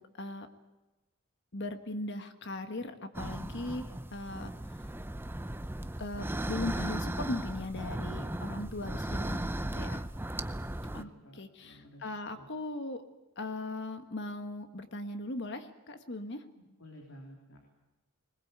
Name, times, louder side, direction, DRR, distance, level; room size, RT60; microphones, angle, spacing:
voice 1, 1.5-4.5 6.0-9.4 9.7-10.0 10.9-11.1 11.4-13.0 13.4-16.4, left 2 dB, 60° left, 8 dB, 1.6 m, -38 dB
sound 1, 3.1-11.0, right 1 dB, 10° right, 0.7 m, -36 dB
voice 2, 9.2-9.6 10.8-12.5 16.5-17.7, equal, 90° left, 1 dB, 3.6 m, -53 dB
21.5 x 20.5 x 8.2 m, 1.1 s
head